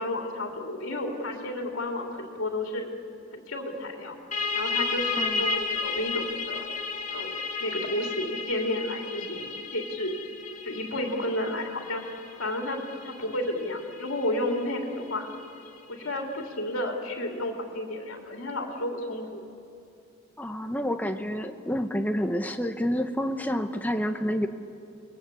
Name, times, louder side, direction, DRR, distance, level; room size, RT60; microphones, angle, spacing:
voice 1, 0.0-2.9 3.3-4.2 4.5-6.6 7.1-10.2 10.6-12.0 12.4-15.3 15.9-19.4, left 1 dB, 80° left, 1 dB, 3.0 m, -32 dB
sound 1, 4.3-15.7, left 4 dB, 35° left, 1.6 m, -33 dB
voice 2, 20.4-24.5, equal, 10° left, 6 dB, 1.0 m, -28 dB
30.0 x 21.0 x 8.5 m, 2.7 s
head